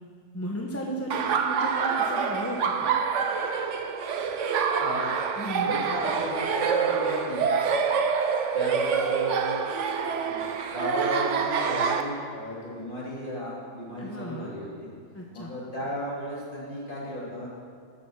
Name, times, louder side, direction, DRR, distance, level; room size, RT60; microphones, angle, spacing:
voice 1, 0.3-2.9 5.4-5.8 14.0-14.5 15.1-15.5, equal, 10° left, -1 dB, 0.9 m, -35 dB
Laughter, 1.1-12.0, right 6 dB, 70° right, 1.1 m, -26 dB
voice 2, 5.6-7.5 8.5-9.6 10.2-10.4 10.7-14.9 15.3-17.5, equal, 40° left, -7 dB, 3.5 m, -35 dB
14.0 x 7.0 x 6.5 m, 2.1 s
omnidirectional pair, 1.3 m